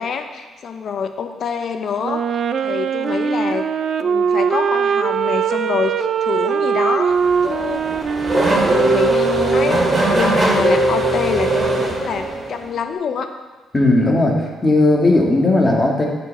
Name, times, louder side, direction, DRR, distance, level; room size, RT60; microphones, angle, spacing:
voice 1, 0.0-3.7 4.0-7.2 7.4-7.9 8.3-11.6 11.8-13.3, left 6 dB, 60° left, 7 dB, 0.9 m, -25 dB
Wind instrument woodwind instrument, 2.0-10.3, right 7 dB, 55° right, 0.5 m, -21 dB
Race car auto racing / Accelerating revving vroom, 7.1-12.7, right 2 dB, 25° right, 2.7 m, -19 dB
voice 2, 13.7-16.1, left 2 dB, 25° left, -1 dB, 2.1 m, -16 dB
9.2 x 5.4 x 7.1 m, 1.3 s
cardioid pair, 90°, 0 cm